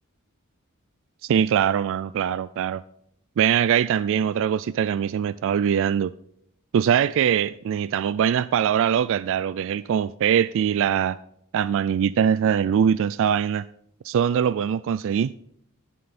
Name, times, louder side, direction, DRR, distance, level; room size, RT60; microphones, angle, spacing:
voice 1, 1.2-2.8 3.4-6.1 6.7-11.2 11.5-13.7 14.0-15.3, right 8 dB, 60° right, 0.3 m, -22 dB
11.0 x 10.5 x 4.2 m
head